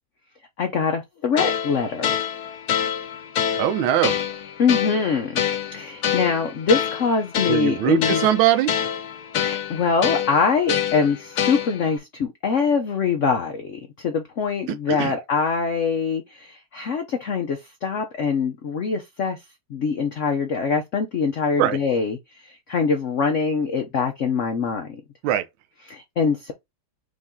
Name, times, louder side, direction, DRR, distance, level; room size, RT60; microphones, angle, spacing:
voice 1, 0.6-2.2 4.6-8.3 9.4-19.4 19.7-25.0 25.9-26.5, left 5 dB, 90° left, 0.6 m, -24 dB
sound 1, 1.4-12.0, left 9 dB, 65° left, 1.1 m, -27 dB
voice 2, 3.5-4.2 7.5-8.7 14.7-15.1 21.6-21.8 25.2-25.4, right 11 dB, 85° right, 1.5 m, -21 dB
5.2 x 2.6 x 3.6 m
omnidirectional pair, 2.2 m